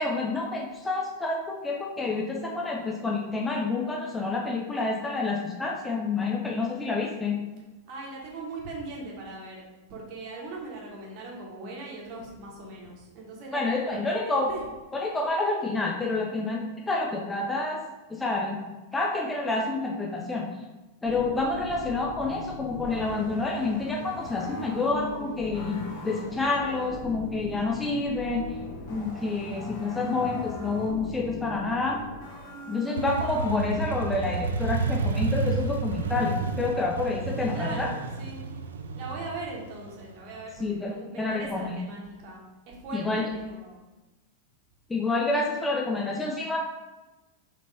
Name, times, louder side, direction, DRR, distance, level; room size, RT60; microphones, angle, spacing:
voice 1, 0.0-7.4 13.5-14.5 14.9-17.8 18.1-18.6 18.9-20.5 21.0-28.5 28.9-32.0 32.7-37.9 40.6-40.9 41.2-41.8 42.9-43.3 44.9-46.6, left 3 dB, 10° left, -1 dB, 0.6 m, -28 dB
voice 2, 7.9-9.6 9.9-14.7 26.6-27.0 37.5-38.4 38.9-43.8, right 2 dB, 45° right, -2 dB, 1.1 m, -40 dB
sound 1, 21.0-34.4, left 1 dB, 45° left, 1.0 m, -40 dB
Motorcycle, 33.0-40.6, right 4 dB, 65° right, 0.4 m, -31 dB
4.4 x 2.9 x 3.9 m, 1.1 s
figure-of-eight pair, 90°, 0 cm